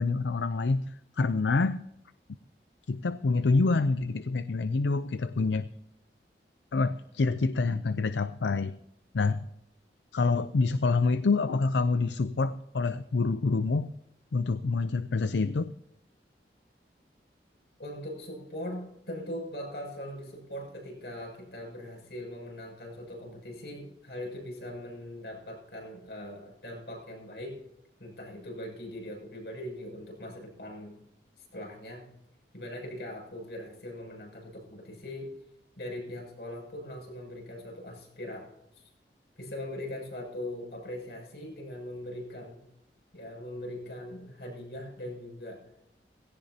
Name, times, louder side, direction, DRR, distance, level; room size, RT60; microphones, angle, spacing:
voice 1, 0.0-1.9 2.9-5.7 6.7-8.7 9.1-9.5 10.1-13.9 14.3-15.7, left 3 dB, 90° left, 13 dB, 0.5 m, -27 dB
voice 2, 17.8-27.6 28.0-31.0 31.4-32.1 32.5-35.3 35.8-38.9 39.4-42.6 43.1-45.7, left 1 dB, 75° left, -1 dB, 7.0 m, -41 dB
18.0 x 17.0 x 2.8 m, 0.83 s
head